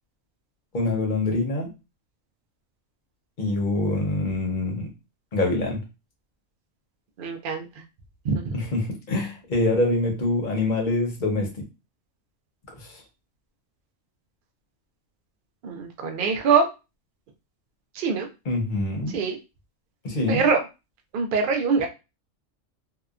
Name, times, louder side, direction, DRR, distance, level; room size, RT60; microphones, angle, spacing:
voice 1, 0.7-1.7 3.4-4.9 5.3-5.8 8.5-11.5 12.8-13.0 18.5-19.1 20.0-20.4, left 2 dB, 40° left, 1 dB, 0.8 m, -25 dB
voice 2, 7.2-7.7 8.2-8.5 15.6-16.7 17.9-18.3 19.1-19.4 20.3-20.6 21.1-21.9, right 5 dB, 65° right, 4 dB, 0.5 m, -23 dB
2.7 x 2.2 x 2.4 m, 0.27 s
omnidirectional pair, 1.4 m